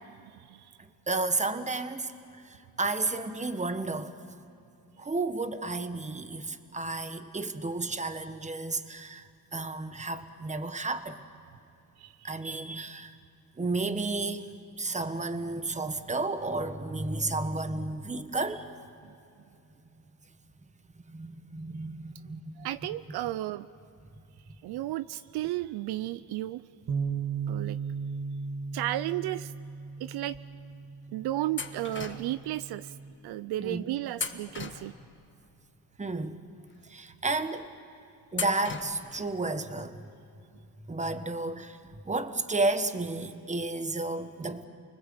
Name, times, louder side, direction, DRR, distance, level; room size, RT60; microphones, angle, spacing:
voice 1, 0.2-0.8 12.0-12.3 19.0-19.1 22.6-23.7 24.6-26.6 27.5-27.8 28.7-29.5 30.0-30.4 31.1-32.9 33.2-34.9, right 15 dB, 70° right, 15 dB, 0.6 m, -33 dB
voice 2, 1.1-2.1 2.4-4.1 5.0-11.2 12.2-13.1 13.6-14.5 14.8-18.7 21.1-22.6 33.6-33.9 36.0-36.3 36.9-37.7 38.3-40.0 40.9-44.7, right 3 dB, 15° right, 10 dB, 1.4 m, -32 dB
Bass guitar, 26.9-33.1, right 6 dB, 45° right, 2.1 m, -36 dB
sound 1, 31.6-32.5 34.1-35.3 38.3-39.2, left 5 dB, 30° left, 1.7 m, -37 dB
29.5 x 20.0 x 7.9 m, 2.7 s
cardioid pair, 100°, 40 cm